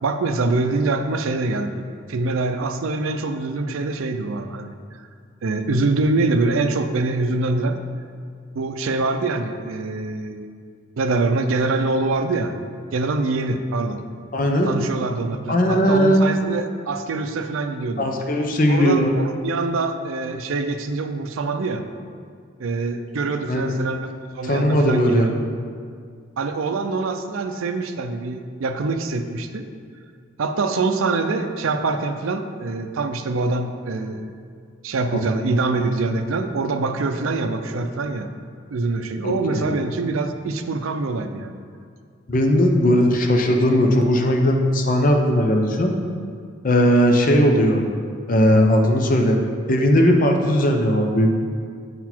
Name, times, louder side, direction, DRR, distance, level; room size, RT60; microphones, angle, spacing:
voice 1, 0.0-4.7 5.4-7.8 8.6-10.5 11.0-12.7 12.9-14.0 14.6-18.1 18.7-21.8 22.6-24.1 24.4-25.4 26.4-29.7 30.4-34.3 34.8-38.3 38.7-41.5, right 3 dB, 80° right, 7 dB, 0.5 m, -24 dB
voice 2, 14.3-14.7 15.5-16.2 18.0-19.1 23.5-23.6 24.4-25.3 35.1-35.2 39.2-39.7 42.3-45.9 46.6-47.8 48.3-49.4 49.7-51.3, equal, 40° left, 2 dB, 0.7 m, -18 dB
8.2 x 4.1 x 4.4 m, 2.2 s
head